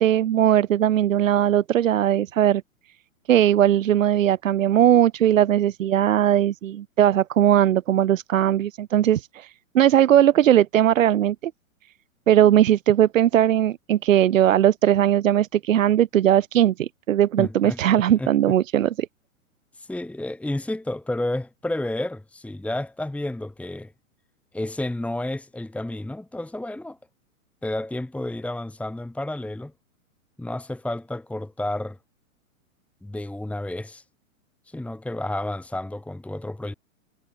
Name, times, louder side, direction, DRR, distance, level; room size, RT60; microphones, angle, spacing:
voice 1, 0.0-2.6 3.3-11.5 12.3-18.9, right 11 dB, 65° right, 2.3 m, -19 dB
voice 2, 17.4-18.3 19.7-23.9 24.5-27.0 27.6-29.7 30.4-32.0 33.0-34.0 34.7-36.7, left 1 dB, 5° left, 2.5 m, -31 dB
hypercardioid pair, 115°, 42 cm